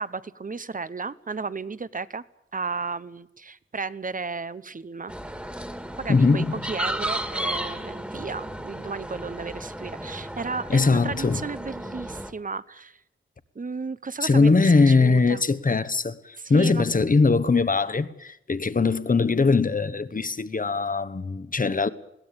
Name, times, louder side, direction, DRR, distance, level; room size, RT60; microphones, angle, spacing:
voice 1, 0.0-2.2 2.5-5.1 6.0-13.0 13.5-15.4 16.4-16.9, right 4 dB, 40° right, 0.9 m, -34 dB
sound 1, 5.1-12.3, right 1 dB, 5° right, 2.0 m, -34 dB
voice 2, 6.1-6.6 10.7-11.4 14.2-21.9, left 4 dB, 40° left, 1.2 m, -21 dB
21.5 x 17.0 x 8.9 m
wide cardioid pair, 105°, 21 cm